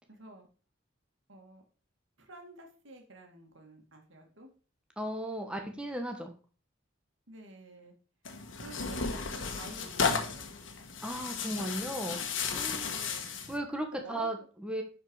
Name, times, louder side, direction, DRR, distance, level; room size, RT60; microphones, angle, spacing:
voice 1, 0.1-0.5 1.3-1.6 2.2-4.5 7.3-7.9 8.6-10.6 12.8-13.4 13.7-14.5, right 1 dB, 75° right, 2 dB, 2.4 m, -50 dB
voice 2, 5.0-6.3 11.0-12.2 12.5-12.9 13.5-14.4 14.6-14.8, right 1 dB, 5° right, 3 dB, 1.2 m, -35 dB
Tearing, 8.2-13.6, left 5 dB, 75° left, 1.4 m, -34 dB
11.0 x 5.1 x 4.8 m, 0.38 s
head